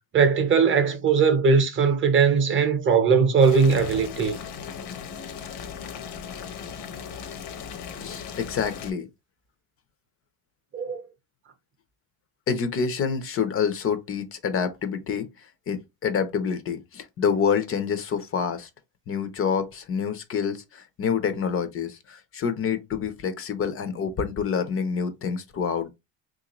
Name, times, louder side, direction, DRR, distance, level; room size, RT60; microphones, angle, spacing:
voice 1, 0.1-4.4 10.7-11.0, right 5 dB, 30° right, 0.7 m, -20 dB
Boiling, 3.4-8.9, left 7 dB, 70° left, 0.8 m, -37 dB
voice 2, 8.0-9.1 12.5-18.7 19.1-25.9, left 6 dB, 30° left, 0.5 m, -27 dB
3.5 x 2.5 x 2.9 m
cardioid pair, 155°, 44 cm